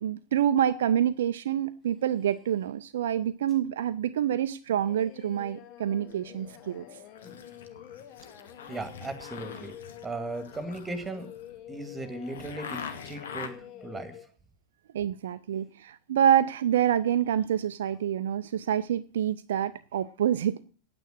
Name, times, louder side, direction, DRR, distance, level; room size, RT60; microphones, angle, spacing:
voice 1, 0.0-6.9 14.9-20.6, right 10 dB, 60° right, 0.4 m, -27 dB
sound 1, 1.8-2.8 3.5-3.7 4.2-4.3 4.7-5.7 6.6-6.7 7.2-7.5 9.2-9.5 10.5-11.3 13.4-13.9 15.5-15.7 17.8-18.1, left 2 dB, 25° left, 5.8 m, -58 dB
Singing, 4.8-14.3, left 12 dB, 40° left, 1.0 m, -48 dB
sound 2, 6.1-6.8 7.1-13.5, left 6 dB, 65° left, 1.5 m, -44 dB
voice 2, 8.7-9.7 10.0-11.3 11.7-13.5 13.8-14.2, right 2 dB, 10° right, 2.0 m, -37 dB
9.5 x 9.1 x 6.4 m
figure-of-eight pair, 90°, 0 cm